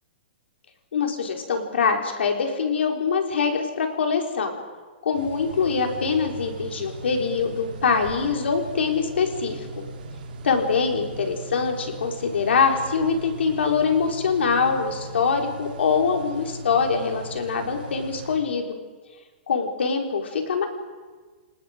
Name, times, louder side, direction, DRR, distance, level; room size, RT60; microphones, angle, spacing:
voice 1, 0.9-4.6 5.0-9.7 10.4-18.8 19.5-20.7, left 5 dB, 90° left, 3 dB, 4.2 m, -24 dB
sound 1, 5.1-18.4, right 2 dB, 55° right, 3.8 m, -38 dB
29.0 x 19.5 x 5.2 m, 1.4 s
hypercardioid pair, 175°, 6 cm